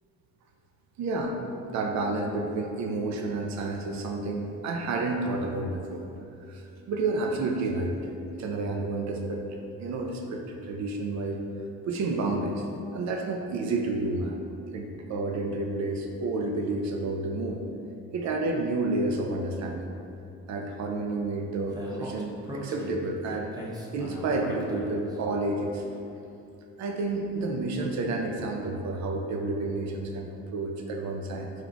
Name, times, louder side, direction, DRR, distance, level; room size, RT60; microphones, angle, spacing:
voice 1, 1.0-1.4 1.7-6.0 6.5-8.1 8.4-9.4 9.8-11.4 11.9-12.7 12.9-14.4 14.7-17.6 18.1-19.9 20.5-23.5 23.9-25.9 26.8-31.5, right 2 dB, 65° right, 2 dB, 0.5 m, -30 dB
Speech, 21.7-25.1, equal, 15° right, 0.6 m, -39 dB
4.5 x 2.4 x 3.9 m, 2.7 s
cardioid pair, 90°, 30 cm